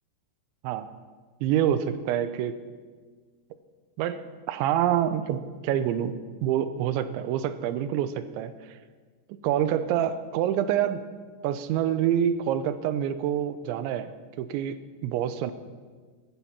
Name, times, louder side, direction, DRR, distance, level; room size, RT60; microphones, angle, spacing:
voice 1, 1.4-2.6 4.0-8.8 9.4-11.0 11.4-14.1 14.4-15.5, right 10 dB, 85° right, 12 dB, 3.0 m, -27 dB
16.0 x 14.0 x 5.8 m, 1.5 s
omnidirectional pair, 5.4 m